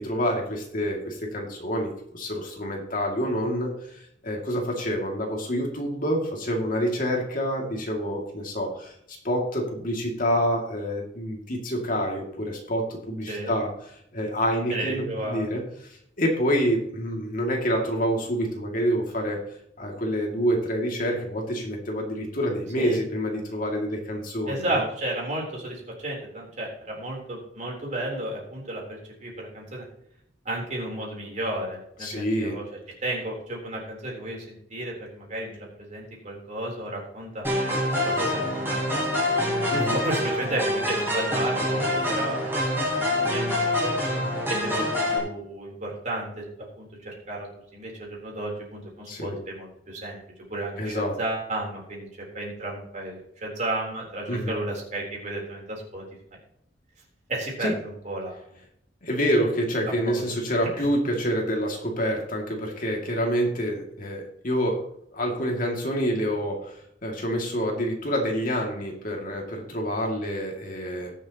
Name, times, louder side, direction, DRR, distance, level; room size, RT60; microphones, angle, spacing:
voice 1, 0.0-8.9 9.2-13.7 14.1-15.6 16.2-19.4 19.8-24.8 32.0-32.6 39.7-40.0 49.1-49.4 50.8-51.2 54.3-54.6 57.6-57.7 59.0-64.8 65.1-71.1, equal, 50° left, 1 dB, 2.4 m, -27 dB
voice 2, 14.7-15.5 22.8-23.0 24.5-29.8 30.5-32.6 33.0-37.4 38.0-39.0 39.9-43.9 44.5-46.4 46.8-50.2 50.5-52.1 52.3-56.0 57.3-58.4 59.9-60.2 60.8-60.9, right 1 dB, 40° right, -2 dB, 3.7 m, -33 dB
sound 1, 37.4-45.2, left 1 dB, 15° right, 4.0 m, -26 dB
20.0 x 7.0 x 3.0 m, 0.72 s
head